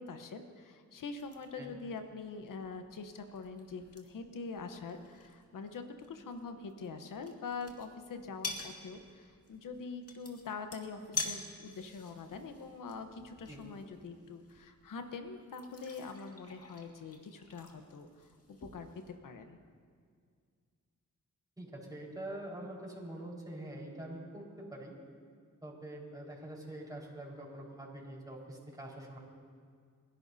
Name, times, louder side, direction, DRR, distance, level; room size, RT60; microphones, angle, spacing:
voice 1, 0.0-19.6, left 4 dB, 90° left, 7 dB, 1.1 m, -44 dB
sound 1, 1.2-19.2, left 3 dB, 50° left, 2.1 m, -48 dB
voice 2, 21.6-24.9 25.6-29.2, right 1 dB, 10° right, -4 dB, 4.7 m, -45 dB
29.5 x 11.5 x 2.8 m, 2.1 s
cardioid pair, 55°, 31 cm